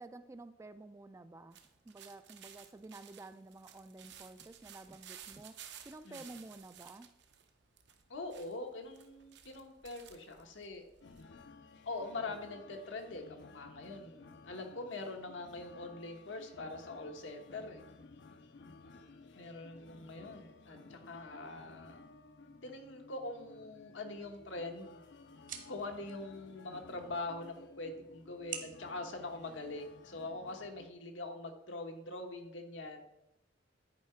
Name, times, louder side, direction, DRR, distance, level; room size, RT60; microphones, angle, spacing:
voice 1, 0.0-1.6 1.8-7.1, right 2 dB, 15° right, 11 dB, 0.3 m, -51 dB
sound 1, 1.5-11.4, right 9 dB, 65° right, 0.7 m, -56 dB
voice 2, 8.1-10.9 11.8-17.8 19.3-22.0 22.6-25.0 25.7-33.0, left 2 dB, 80° left, 4 dB, 1.2 m, -43 dB
sound 2, 11.0-30.9, left 3 dB, 65° left, 0.6 m, -56 dB
sound 3, 24.2-30.2, right 8 dB, 45° right, 1.0 m, -51 dB
10.5 x 4.7 x 4.4 m, 0.87 s
head